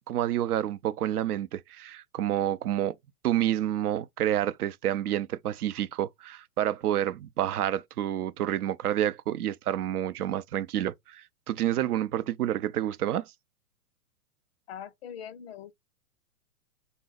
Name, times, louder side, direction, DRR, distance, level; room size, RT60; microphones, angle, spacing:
voice 1, 0.1-3.0 3.2-13.3, right 12 dB, 75° right, 0.5 m, -29 dB
voice 2, 14.7-15.7, left 9 dB, 45° left, 0.4 m, -42 dB
3.9 x 2.0 x 3.9 m
hypercardioid pair, 120°, 46 cm